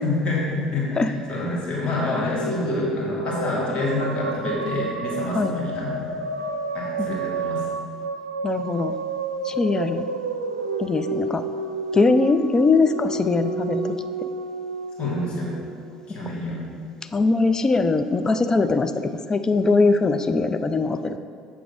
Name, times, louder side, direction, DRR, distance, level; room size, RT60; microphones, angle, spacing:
voice 1, 0.0-6.0 6.7-7.7 15.0-15.6 16.1-16.6, left 2 dB, 40° left, -5 dB, 2.2 m, -27 dB
sound 1, 2.0-16.4, right 3 dB, 80° right, 0.5 m, -30 dB
voice 2, 8.4-9.0 9.4-10.1 10.8-11.5 11.9-14.0 17.1-21.2, left 3 dB, 25° left, 9 dB, 0.4 m, -21 dB
8.0 x 6.0 x 4.7 m, 2.2 s
figure-of-eight pair, 60°, 3 cm